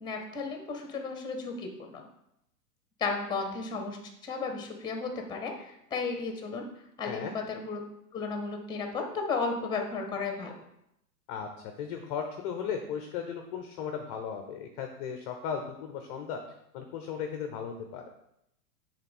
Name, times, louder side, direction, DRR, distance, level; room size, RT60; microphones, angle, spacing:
voice 1, 0.0-2.0 3.0-6.6 7.0-7.8 8.1-10.5, left 4 dB, 10° left, 4 dB, 0.8 m, -34 dB
voice 2, 7.0-7.4 11.3-11.5 11.8-16.4 16.7-18.0, left 7 dB, 25° left, 5 dB, 0.5 m, -36 dB
5.8 x 3.5 x 5.3 m, 0.80 s
hypercardioid pair, 130°, 47 cm